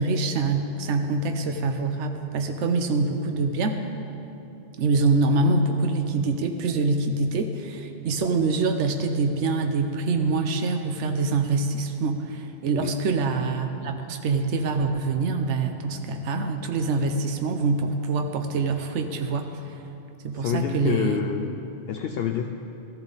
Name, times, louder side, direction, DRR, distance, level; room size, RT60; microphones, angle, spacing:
voice 1, 0.0-3.8 4.8-19.8 20.2-21.3, right 3 dB, 75° right, 5 dB, 1.1 m, -25 dB
voice 2, 20.4-21.5 21.9-22.5, left 8 dB, 65° left, 6 dB, 0.7 m, -27 dB
14.5 x 14.0 x 4.0 m, 2.8 s
omnidirectional pair, 1.2 m